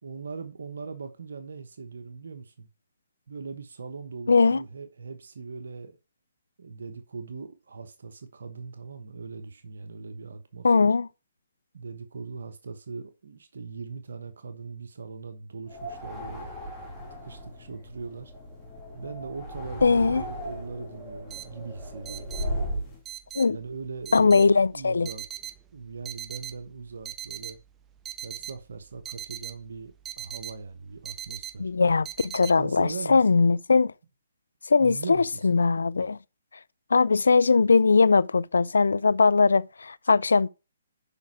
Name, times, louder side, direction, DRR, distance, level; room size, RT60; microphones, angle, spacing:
voice 1, 0.0-2.7 3.3-5.9 6.6-10.9 11.7-16.5 17.1-18.3 18.9-22.8 23.5-25.2 25.7-27.6 28.2-31.7 32.6-33.4 34.8-35.5, right 4 dB, 75° right, 1.0 m, -40 dB
voice 2, 4.3-4.6 10.6-11.1 19.8-20.2 23.3-23.6 24.1-25.1 31.6-33.9 34.7-36.2 36.9-40.5, left 4 dB, 80° left, 0.4 m, -20 dB
sound 1, 15.7-23.0, equal, 10° left, 2.9 m, -36 dB
sound 2, 21.3-32.5, right 11 dB, 15° right, 0.5 m, -40 dB
7.0 x 5.3 x 4.6 m
hypercardioid pair, 140°, 0 cm